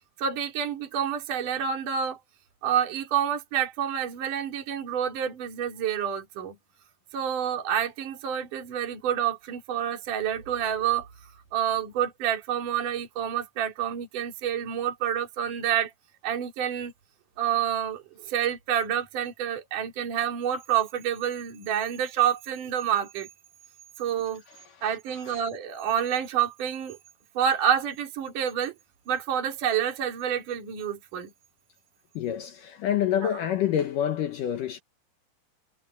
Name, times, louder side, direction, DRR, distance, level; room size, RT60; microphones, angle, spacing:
voice 1, 0.2-2.2 2.6-6.6 7.1-11.1 11.5-15.9 16.2-16.9 17.4-23.3 24.0-24.4 24.8-27.0 27.3-28.7 29.1-31.3 33.2-33.4, right 9 dB, 50° right, 4.7 m, -28 dB
voice 2, 24.5-25.4 32.2-34.8, left 10 dB, 75° left, 2.0 m, -28 dB
omnidirectional pair, 5.1 m